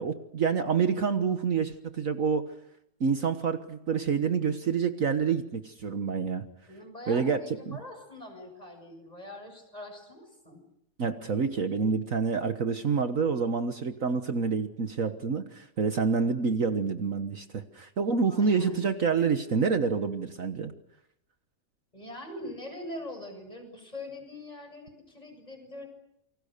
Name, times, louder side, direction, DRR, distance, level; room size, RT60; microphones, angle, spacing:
voice 1, 0.0-2.4 3.0-6.4 7.1-7.4 7.7-7.8 11.0-20.7, right 5 dB, 55° right, 8 dB, 1.7 m, -27 dB
voice 2, 6.7-10.6 18.3-18.8 21.9-25.9, left 1 dB, 25° left, 4 dB, 7.5 m, -42 dB
28.5 x 25.0 x 6.7 m, 0.81 s
omnidirectional pair, 1.7 m